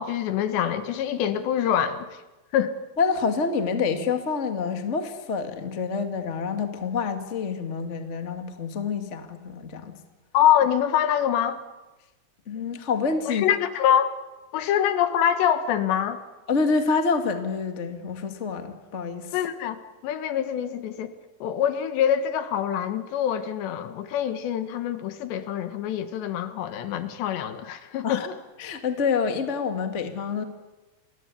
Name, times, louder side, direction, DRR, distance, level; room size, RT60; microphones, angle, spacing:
voice 1, 0.0-2.1 2.5-2.7 10.3-11.6 13.3-14.1 14.5-16.2 19.3-21.1 21.4-28.4, left 9 dB, 75° left, 10 dB, 3.6 m, -25 dB
voice 2, 3.0-10.0 12.5-13.5 14.6-14.7 16.5-19.3 28.0-28.3 28.6-30.4, left 5 dB, 50° left, 6 dB, 0.8 m, -27 dB
29.5 x 21.0 x 8.4 m, 1.1 s
omnidirectional pair, 5.2 m